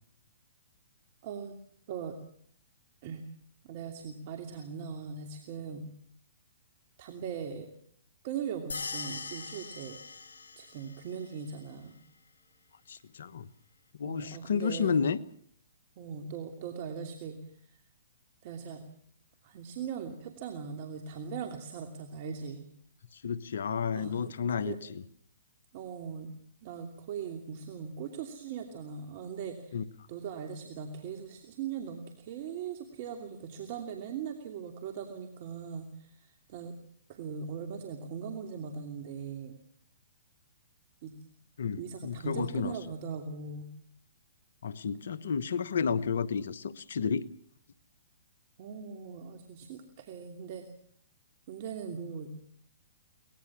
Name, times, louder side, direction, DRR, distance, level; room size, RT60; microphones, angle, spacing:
voice 1, 1.2-1.6 1.9-2.2 3.0-3.2 3.6-5.9 7.0-7.7 8.2-10.0 10.6-12.0 14.0-15.0 16.0-17.8 18.4-18.8 19.4-22.6 23.9-24.3 24.6-24.8 25.7-26.3 26.6-29.8 30.1-36.7 37.1-39.6 41.0-41.1 41.8-43.7 48.6-50.7 51.5-52.3, right 6 dB, 45° right, 2.7 m, -40 dB
sound 1, 8.7-11.0, left 4 dB, 85° left, 4.6 m, -40 dB
voice 2, 12.9-13.5 14.0-15.2 23.1-24.8 29.7-29.8 41.6-42.7 44.6-47.3, left 6 dB, 70° left, 1.2 m, -31 dB
24.0 x 20.0 x 7.4 m
hypercardioid pair, 135°, 0 cm